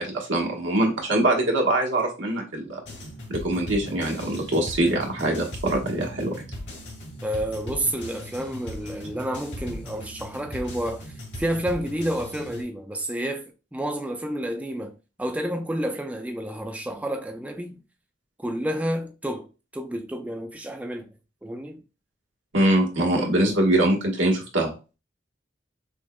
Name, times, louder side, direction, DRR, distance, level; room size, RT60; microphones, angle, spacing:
voice 1, 0.0-2.8 3.3-6.3 22.5-24.7, right 1 dB, 90° right, 1.2 m, -23 dB
sound 1, 2.8-12.6, left 1 dB, 70° left, 2.0 m, -38 dB
voice 2, 7.2-17.8 18.4-19.5 19.7-21.1 21.4-21.8 23.1-23.3, right 1 dB, 10° right, 0.3 m, -30 dB
6.1 x 2.2 x 2.2 m
head